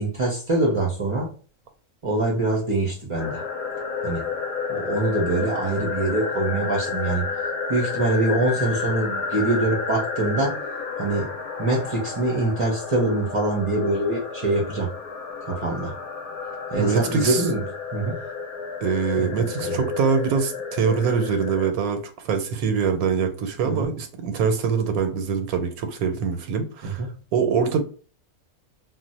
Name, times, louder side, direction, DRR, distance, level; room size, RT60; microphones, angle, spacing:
voice 1, 0.0-1.3 2.0-3.4 4.0-4.3 4.7-7.3 7.7-10.5 11.0-11.3 11.6-14.9 15.5-15.9 16.7-17.6 17.9-18.2 19.2-19.8 23.6-23.9 26.8-27.1, right 2 dB, 45° right, -2 dB, 0.4 m, -24 dB
sound 1, 3.2-21.7, left 5 dB, 90° left, 1.1 m, -31 dB
voice 2, 16.8-17.5 18.8-27.1 27.3-27.8, right 6 dB, 90° right, 7 dB, 1.1 m, -24 dB
2.5 x 2.1 x 3.9 m, 0.39 s
omnidirectional pair, 1.5 m